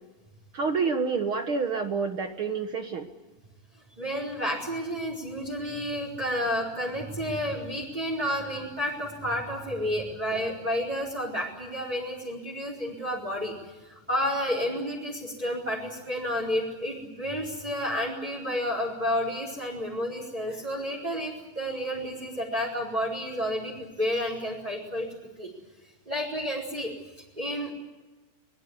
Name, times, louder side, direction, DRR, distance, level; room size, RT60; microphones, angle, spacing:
voice 1, 0.5-3.1, right 5 dB, 55° right, 7 dB, 1.6 m, -28 dB
voice 2, 4.0-13.5 13.9-25.1 25.4-25.5 26.1-26.9 27.4-27.7, equal, 10° right, -3 dB, 4.6 m, -31 dB
24.0 x 21.0 x 9.7 m, 1.2 s
omnidirectional pair, 3.9 m